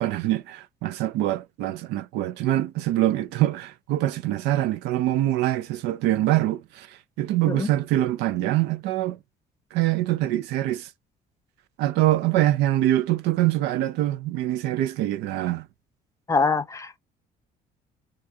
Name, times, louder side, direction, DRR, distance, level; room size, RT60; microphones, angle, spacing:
voice 1, 0.0-9.2 9.7-10.9 11.8-15.7, right 14 dB, 90° right, 0.5 m, -24 dB
voice 2, 16.3-17.0, left 4 dB, 20° left, 0.6 m, -24 dB
3.7 x 2.7 x 2.4 m
cardioid pair, 110°, 17 cm